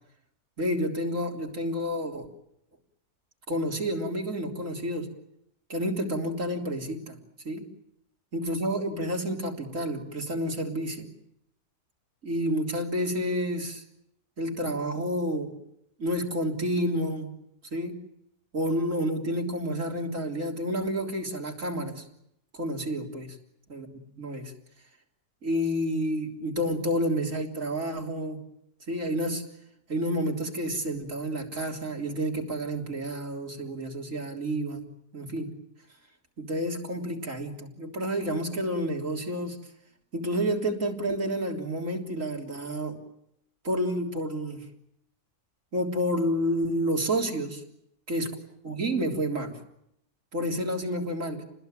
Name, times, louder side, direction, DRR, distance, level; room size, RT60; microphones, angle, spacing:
voice 1, 0.6-2.3 3.5-5.1 5.7-7.2 7.4-7.6 8.3-11.1 12.2-13.8 14.4-15.5 16.0-17.3 17.7-18.0 18.5-22.0 22.5-23.4 23.7-23.9 24.1-24.5 25.4-28.4 28.9-29.4 29.9-34.8 35.1-35.5 36.4-39.6 40.1-43.0 43.6-44.6 45.7-47.6 48.1-48.3 48.6-49.6 50.3-51.4, equal, 55° right, 2 dB, 3.9 m, -29 dB
29.5 x 20.5 x 9.1 m, 0.77 s
omnidirectional pair, 1.7 m